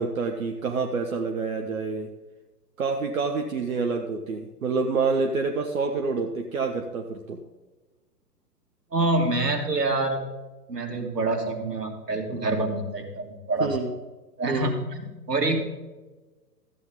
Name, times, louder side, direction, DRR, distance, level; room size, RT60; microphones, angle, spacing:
voice 1, 0.0-2.1 2.8-7.4 13.6-13.9 14.5-14.7, right 4 dB, 55° right, 4 dB, 1.0 m, -27 dB
voice 2, 8.9-10.2 10.7-13.7 14.4-15.6, right 2 dB, 75° right, 3 dB, 2.2 m, -26 dB
13.5 x 8.9 x 3.8 m, 1.2 s
figure-of-eight pair, 120°, 48 cm